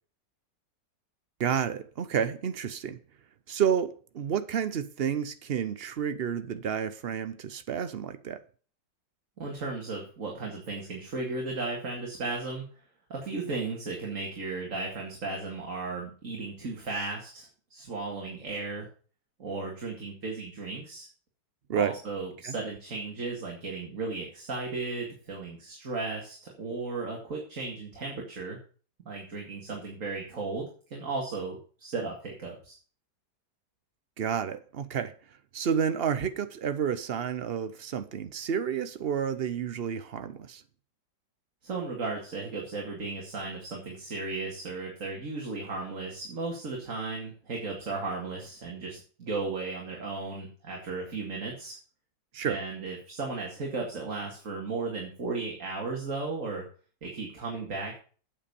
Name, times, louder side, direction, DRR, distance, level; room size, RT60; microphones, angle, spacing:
voice 1, 1.4-3.0 3.5-8.4 21.7-22.0 22.4-22.5 34.2-35.1 35.5-40.6 52.3-52.6, right 8 dB, 65° right, 0.6 m, -30 dB
voice 2, 9.4-12.6 13.1-17.5 17.7-18.9 19.4-21.1 21.8-28.6 29.1-32.7 41.6-51.8 52.4-56.6 57.0-58.0, right 3 dB, 45° right, 2.4 m, -35 dB
8.6 x 7.3 x 6.9 m
omnidirectional pair, 2.0 m